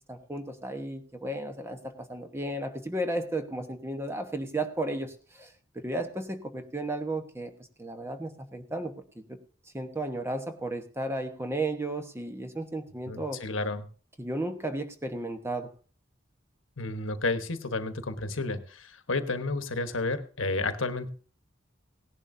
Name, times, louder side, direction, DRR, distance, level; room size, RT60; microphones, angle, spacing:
voice 1, 0.1-7.5 7.8-9.4 9.7-13.4 14.2-15.7, right 1 dB, 15° right, 6 dB, 1.1 m, -34 dB
voice 2, 13.1-13.9 16.8-21.1, left 3 dB, 80° left, 9 dB, 1.2 m, -31 dB
18.0 x 11.0 x 2.7 m, 0.38 s
head